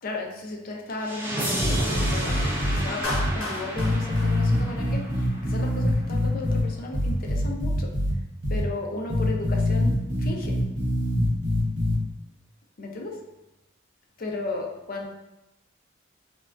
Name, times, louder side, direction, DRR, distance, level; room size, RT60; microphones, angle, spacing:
voice 1, 0.0-7.9 8.5-10.6 12.8-13.2 14.2-15.1, left 2 dB, 45° left, 1 dB, 0.4 m, -35 dB
sound 1, 1.0-5.9, equal, 10° right, 0.5 m, -31 dB
sound 2, 1.6-2.8 3.1-3.3 3.8-6.6 6.9-8.1 8.4-8.6 9.1-11.9, left 1 dB, 60° right, 0.7 m, -24 dB
Clapping, 3.0-5.3, left 1 dB, 85° left, 0.7 m, -35 dB
3.5 x 2.2 x 2.3 m, 0.95 s
head